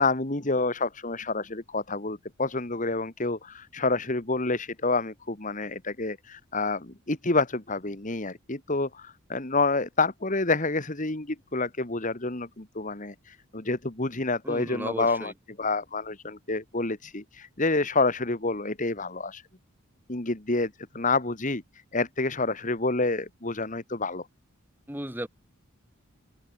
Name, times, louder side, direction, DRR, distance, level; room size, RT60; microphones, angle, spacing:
voice 1, 0.0-15.3 15.6-19.4 20.1-21.6 21.9-24.2, left 3 dB, 35° left, 1.8 m, -28 dB
voice 2, 14.4-15.3 24.9-25.3, right 1 dB, 10° right, 2.7 m, -34 dB
open air
head